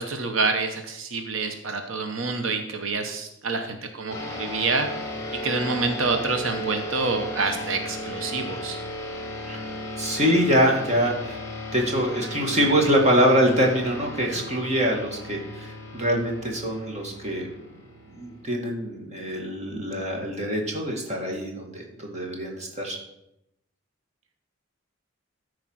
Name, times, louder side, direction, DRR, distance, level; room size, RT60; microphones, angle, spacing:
voice 1, 0.0-4.9 5.4-8.8, right 4 dB, 90° right, 5 dB, 1.0 m, -27 dB
sound 1, 4.1-18.9, left 1 dB, 15° left, 2.1 m, -36 dB
voice 2, 10.0-11.4 11.7-17.5 18.1-23.0, equal, 35° right, 0 dB, 2.0 m, -24 dB
13.5 x 4.8 x 6.3 m, 0.84 s
head